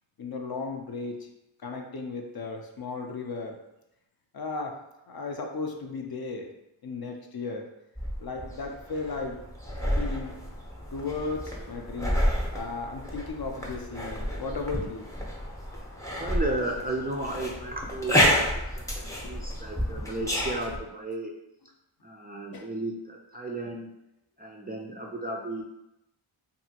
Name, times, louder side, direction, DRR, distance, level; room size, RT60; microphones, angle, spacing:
voice 1, 0.2-1.3 1.6-3.6 4.3-4.8 5.1-6.5 6.8-7.7 8.2-9.4 10.0-10.3 10.9-12.2 12.5-15.1 19.2-19.3 22.5-22.7, left 4 dB, 50° left, 3 dB, 0.5 m, -35 dB
sound 1, 8.0-20.8, equal, 5° left, 0.7 m, -30 dB
voice 2, 16.2-21.3 22.0-23.9 24.4-25.6, right 2 dB, 20° right, -1 dB, 0.3 m, -34 dB
2.7 x 2.5 x 2.8 m, 0.90 s
cardioid pair, 45°, 50 cm